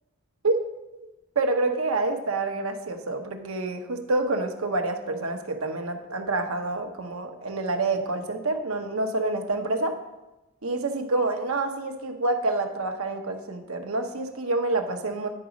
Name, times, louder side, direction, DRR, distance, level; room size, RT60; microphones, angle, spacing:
voice 1, 1.3-9.9 10.6-15.3, right 2 dB, 75° right, 5 dB, 1.0 m, -27 dB
9.9 x 4.9 x 5.2 m, 1.0 s
head